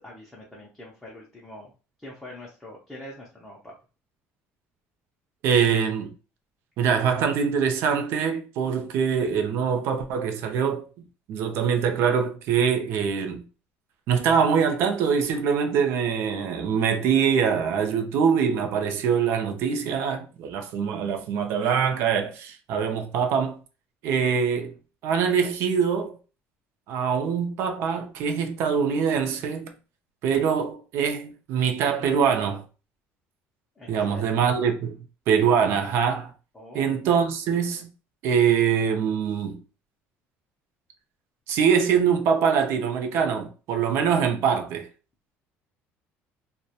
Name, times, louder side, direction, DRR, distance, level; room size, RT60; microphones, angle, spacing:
voice 1, 0.0-1.7 2.0-3.7 33.8-34.4 36.5-36.9, left 1 dB, 5° left, 0.5 m, -44 dB
voice 2, 5.4-6.1 6.8-10.8 11.3-13.4 14.1-23.6 24.0-24.8 25.0-26.2 26.9-29.7 30.2-32.6 33.9-36.3 36.7-37.9 38.2-39.6 41.5-44.9, right 7 dB, 55° right, 0.5 m, -23 dB
2.3 x 2.1 x 2.7 m
cardioid pair, 170°, 5 cm